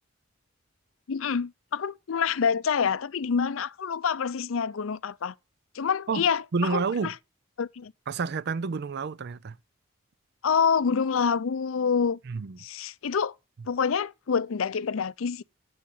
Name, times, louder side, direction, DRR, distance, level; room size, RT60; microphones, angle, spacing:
voice 1, 1.1-5.3 5.7-6.4 6.7-7.1 7.6-7.9 10.4-12.2 12.6-13.3 13.7-15.4, left 6 dB, 75° left, 0.5 m, -27 dB
voice 2, 6.1-7.1 8.1-9.6 12.2-12.6, right 5 dB, 55° right, 0.4 m, -30 dB
8.1 x 7.5 x 6.9 m
head